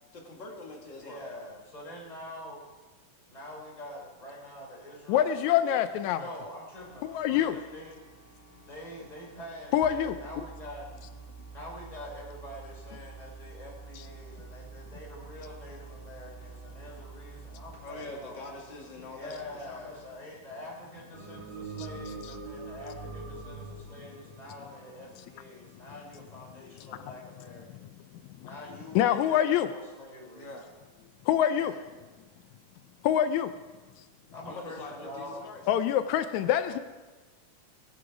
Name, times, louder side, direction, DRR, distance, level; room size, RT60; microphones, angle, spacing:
voice 1, 0.1-1.2 17.8-20.0 30.3-30.7 34.4-35.6, left 2 dB, 40° left, 0 dB, 2.2 m, -44 dB
voice 2, 0.9-2.6 3.3-8.0 8.6-10.9 11.5-18.5 19.1-27.9 28.4-30.5 31.5-31.8 34.3-35.4 36.4-36.8, left 1 dB, 10° left, -3 dB, 3.6 m, -45 dB
voice 3, 5.1-6.3 7.0-7.6 9.7-10.2 21.8-21.9 28.4-28.5 29.0-29.7 31.3-31.7 33.0-33.5 35.7-36.8, left 10 dB, 80° left, 11 dB, 1.7 m, -25 dB
sound 1, 6.8-20.1, right 4 dB, 5° right, 5.0 m, -49 dB
sound 2, 21.1-25.5, right 3 dB, 45° right, 2.4 m, -42 dB
21.0 x 7.9 x 4.7 m, 1.3 s
omnidirectional pair, 3.8 m